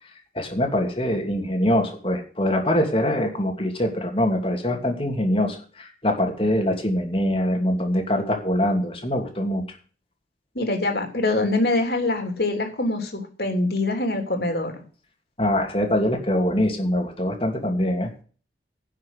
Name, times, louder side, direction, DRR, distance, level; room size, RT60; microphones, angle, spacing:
voice 1, 0.3-9.6 15.4-18.1, left 1 dB, 30° left, 3 dB, 2.9 m, -23 dB
voice 2, 10.5-14.8, left 2 dB, 60° left, 4 dB, 3.3 m, -24 dB
11.0 x 6.5 x 8.2 m, 0.40 s
head